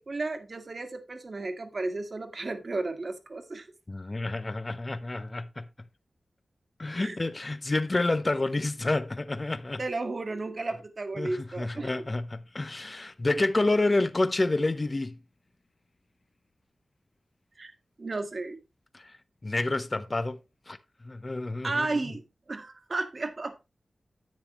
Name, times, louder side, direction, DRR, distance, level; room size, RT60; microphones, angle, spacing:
voice 1, 0.0-3.7 7.0-7.2 9.8-11.9 17.6-17.7 18.0-18.6 21.6-23.6, right 3 dB, 50° right, 1.6 m, -33 dB
voice 2, 3.9-5.7 6.8-9.8 11.2-15.2 18.9-19.1 19.4-20.4 20.7-20.8 21.0-21.9, left 2 dB, 30° left, 0.7 m, -29 dB
10.5 x 9.1 x 3.0 m
wide cardioid pair, 95°, 0 cm